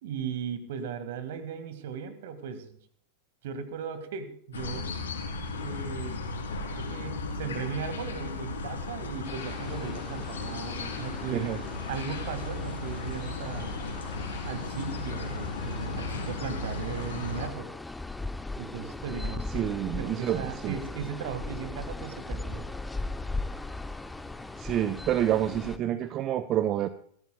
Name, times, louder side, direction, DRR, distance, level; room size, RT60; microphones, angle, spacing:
voice 1, 0.0-2.8 3.4-4.9 5.5-6.2 6.7-11.5 11.9-13.8 14.4-17.7 18.6-19.7 20.0-22.6, right 7 dB, 55° right, 10 dB, 1.9 m, -37 dB
sound 1, 4.5-17.5, left 3 dB, 70° left, 3.3 m, -35 dB
sound 2, 9.2-25.8, left 2 dB, 5° left, 0.7 m, -39 dB
voice 2, 19.5-20.7 24.6-26.9, right 11 dB, 35° right, 13 dB, 0.7 m, -28 dB
22.0 x 15.5 x 2.3 m, 0.63 s
figure-of-eight pair, 90°, 0 cm